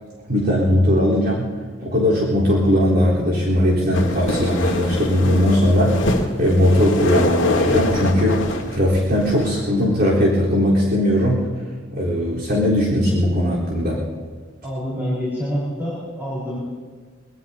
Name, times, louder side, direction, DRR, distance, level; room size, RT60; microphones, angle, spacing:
voice 1, 0.3-1.5 1.8-11.5 11.9-14.1, left 1 dB, 50° right, -6 dB, 3.8 m, -19 dB
sound 1, 3.9-9.6, left 1 dB, 70° left, 1.8 m, -24 dB
voice 2, 14.6-16.6, equal, 10° right, -7 dB, 4.5 m, -26 dB
24.0 x 20.5 x 2.8 m, 1.5 s
head